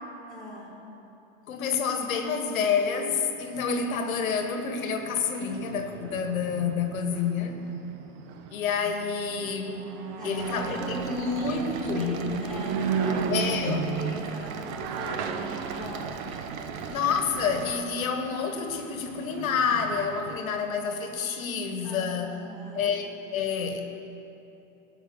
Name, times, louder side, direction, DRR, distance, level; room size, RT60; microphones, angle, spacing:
voice 1, 0.3-0.9 10.2-16.5 21.8-23.0, left 1 dB, ahead, -8 dB, 3.3 m, -41 dB
voice 2, 1.5-7.6 8.5-9.9 10.2-12.3 13.3-13.8 16.8-22.4 22.7-23.0 23.3-24.0, left 6 dB, 85° left, 5 dB, 1.4 m, -28 dB
sound 1, 3.1-3.2 3.6-20.4, right 6 dB, 50° right, 1.0 m, -35 dB
sound 2, 10.4-17.8, right 6 dB, 85° right, 1.1 m, -39 dB
18.0 x 6.0 x 7.0 m, 3.0 s
supercardioid pair, 130°, 40 cm